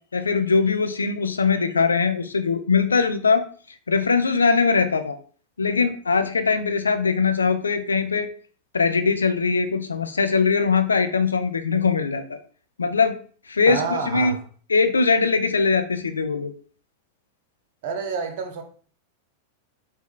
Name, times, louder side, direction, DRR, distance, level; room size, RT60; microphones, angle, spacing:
voice 1, 0.1-3.4 3.9-5.2 5.6-8.3 8.7-12.4 12.8-13.2 13.5-14.4 14.7-16.5, left 4 dB, 75° left, 0.4 m, -21 dB
voice 2, 13.7-14.5 17.8-18.6, right 5 dB, 50° right, 0.6 m, -28 dB
4.5 x 2.2 x 2.4 m
figure-of-eight pair, 90°, 0 cm